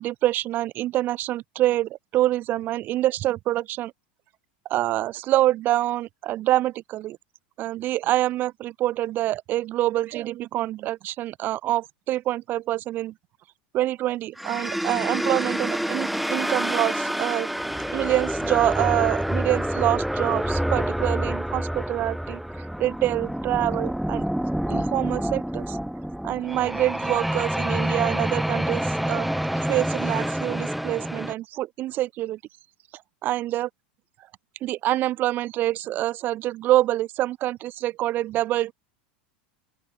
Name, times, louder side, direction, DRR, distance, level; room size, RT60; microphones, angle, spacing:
voice 1, 0.0-3.9 4.7-7.2 7.6-13.1 13.7-17.5 17.9-24.2 24.7-25.8 26.2-29.3 29.6-32.4 33.2-33.7 34.6-38.7, right 14 dB, 40° right, 0.4 m, -26 dB
sound 1, 14.4-31.3, equal, ahead, 0.6 m, -27 dB
open air
supercardioid pair, 120°, 5 cm